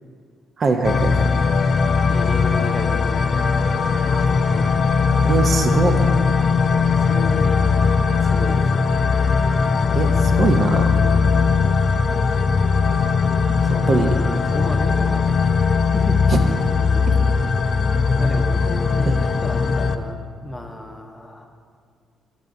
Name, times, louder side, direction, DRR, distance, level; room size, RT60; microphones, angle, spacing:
voice 1, 0.6-1.1 4.1-4.2 5.3-5.9 9.9-10.9 13.9-14.1 19.1-19.2, right 4 dB, 50° right, 5 dB, 0.6 m, -21 dB
sound 1, 0.8-20.0, left 5 dB, 45° left, 0.3 m, -19 dB
voice 2, 2.0-3.5 3.9-4.7 5.2-5.5 7.0-7.7 8.2-8.9 11.3-11.5 13.6-15.5 15.9-16.6 17.0-17.3 18.2-21.5, left 1 dB, 10° left, 4 dB, 0.7 m, -34 dB
13.0 x 4.9 x 2.6 m, 2.1 s
cardioid pair, 90°, 0 cm